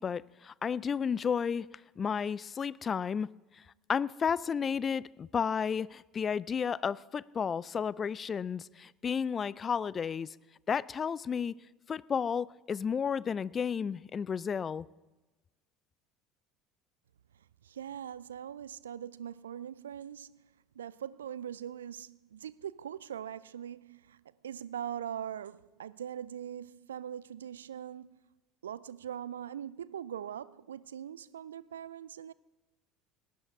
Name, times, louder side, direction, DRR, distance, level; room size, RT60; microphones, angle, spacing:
voice 1, 0.0-1.7 2.0-3.3 3.9-10.3 10.7-11.6 11.9-14.9, left 6 dB, 30° left, 0.3 m, -32 dB
voice 2, 17.6-20.5 20.8-28.2 28.6-32.3, right 9 dB, 75° right, 0.3 m, -42 dB
18.5 x 11.0 x 4.6 m
figure-of-eight pair, 65°, 0 cm